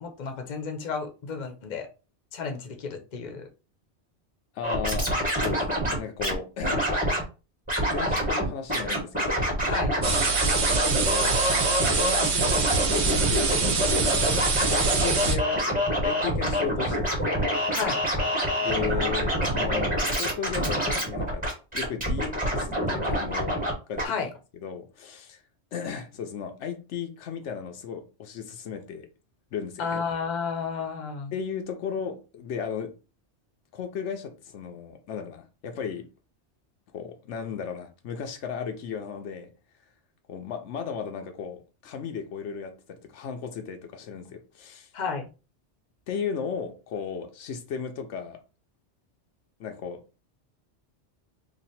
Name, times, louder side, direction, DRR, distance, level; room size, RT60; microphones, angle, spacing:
voice 1, 0.0-1.9 2.3-3.5 9.7-9.9 17.7-18.0 24.0-24.3 29.8-31.3 44.9-45.3, left 5 dB, 45° left, 0.8 m, -32 dB
voice 2, 4.5-6.9 7.8-9.5 10.8-11.4 11.8-17.3 18.6-21.4 21.7-24.3 24.6-25.4 25.7-29.1 29.5-29.9 31.3-33.0 33.7-36.1 36.9-39.5 40.3-44.9 46.1-48.4 49.6-50.0, left 7 dB, 90° left, 1.0 m, -35 dB
Scratching (performance technique), 4.6-6.3 6.6-7.2 7.7-8.4 8.7-23.7 24.0-24.1, equal, 5° right, 1.4 m, -26 dB
sound 1, 10.0-15.4, right 5 dB, 75° right, 1.1 m, -25 dB
3.2 x 2.5 x 4.1 m
omnidirectional pair, 1.2 m